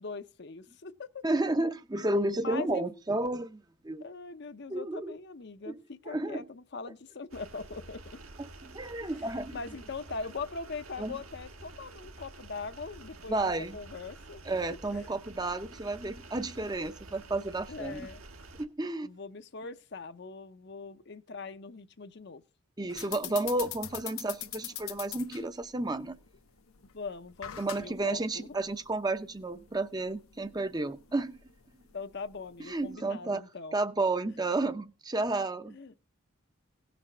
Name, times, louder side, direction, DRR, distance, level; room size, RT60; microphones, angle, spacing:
voice 1, 0.0-1.2 2.4-2.9 4.0-8.0 9.0-9.1 9.5-14.4 14.9-15.2 17.7-18.2 19.0-22.4 23.2-23.5 26.9-28.5 31.9-33.8 35.7-35.9, left 4 dB, 55° left, 0.7 m, -41 dB
voice 2, 1.2-4.0 4.7-5.2 5.7-5.8 6.1-6.4 8.6-9.6 11.0-11.1 13.3-13.8 14.5-18.1 18.6-19.1 22.8-26.1 27.6-31.4 32.6-33.4 33.7-35.8, right 2 dB, 20° right, 0.6 m, -32 dB
sound 1, 7.3-18.7, right 2 dB, 85° right, 1.9 m, -49 dB
sound 2, 22.9-32.9, left 12 dB, 85° left, 0.9 m, -44 dB
17.5 x 6.0 x 5.5 m
head